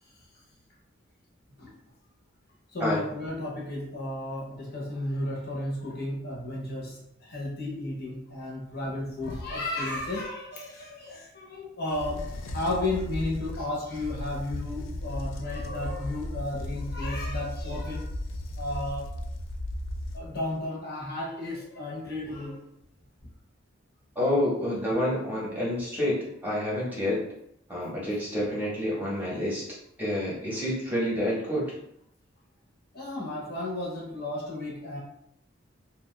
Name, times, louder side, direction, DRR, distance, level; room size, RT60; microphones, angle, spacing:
voice 1, 2.7-12.3 12.5-18.1 18.6-19.1 20.1-22.6 32.9-35.0, left 1 dB, 55° left, -3 dB, 0.8 m, -33 dB
sound 1, 9.0-10.2 11.9-20.5, left 1 dB, 70° left, 0.3 m, -36 dB
voice 2, 24.2-27.2 27.7-29.7 30.0-31.7, left 1 dB, 10° right, -6 dB, 0.8 m, -28 dB
2.7 x 2.2 x 3.1 m, 0.75 s
head